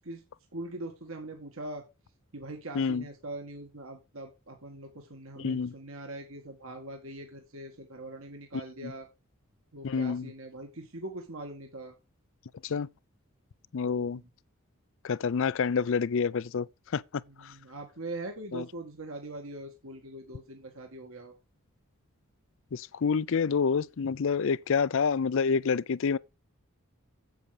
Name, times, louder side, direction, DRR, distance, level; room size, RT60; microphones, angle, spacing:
voice 1, 0.5-1.8 2.3-9.1 9.7-11.9 13.8-14.3 17.3-21.3, right 2 dB, 65° right, 1.9 m, -42 dB
voice 2, 5.4-5.7 8.8-8.9 9.8-10.3 12.6-12.9 13.7-14.2 15.0-16.7 16.9-17.0 17.4-17.5 18.5-18.6 22.7-26.2, left 5 dB, 60° left, 0.4 m, -28 dB
8.2 x 7.9 x 5.0 m
head